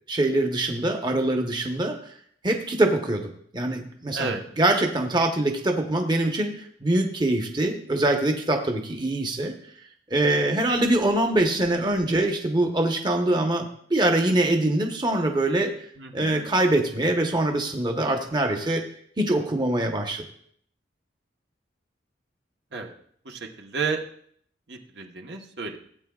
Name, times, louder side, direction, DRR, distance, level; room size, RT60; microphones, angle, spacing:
voice 1, 0.1-2.0 2.4-9.5 10.1-15.7 16.1-18.8 19.2-20.2, right 1 dB, 25° right, 3 dB, 1.0 m, -24 dB
voice 2, 16.0-16.5 22.7-22.9 23.2-24.0 24.7-25.8, right 4 dB, 65° right, 2 dB, 1.1 m, -32 dB
16.5 x 8.6 x 2.4 m, 0.63 s
head